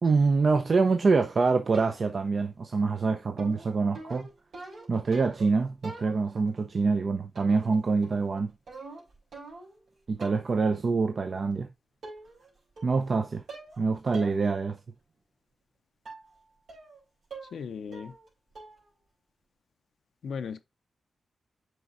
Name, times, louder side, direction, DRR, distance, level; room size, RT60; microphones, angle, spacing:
voice 1, 0.0-4.3 4.9-8.5 10.1-11.7 12.8-13.4 13.8-14.8, right 4 dB, 60° right, 0.6 m, -25 dB
sound 1, 1.7-2.3 3.4-5.5 5.8-6.5 7.4-7.8 8.0-9.8 10.2-10.6 11.5-11.6 12.0-12.5 12.8-13.2 13.5-13.8 14.1-14.4 14.8-14.9 16.1-16.3 16.7-17.0 17.3-17.6 17.9-18.3 18.6-18.9, right 3 dB, 80° right, 3.4 m, -45 dB
voice 2, 17.5-18.1 20.2-20.6, left 6 dB, 85° left, 0.5 m, -36 dB
7.7 x 5.0 x 2.5 m
cardioid pair, 55°, 0 cm